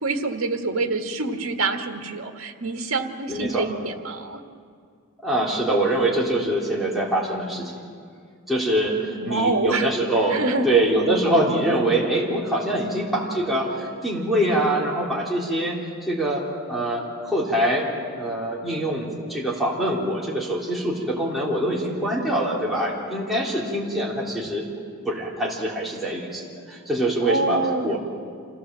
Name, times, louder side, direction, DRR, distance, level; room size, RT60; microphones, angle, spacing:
voice 1, 0.0-4.4 9.1-9.9 10.3-10.7 27.2-28.0, right 3 dB, 75° right, 4 dB, 1.8 m, -26 dB
voice 2, 3.3-3.7 5.2-7.8 8.5-17.9 18.1-24.7 25.1-28.0, right 1 dB, ahead, -6 dB, 3.6 m, -24 dB
27.0 x 16.5 x 7.7 m, 2.2 s
head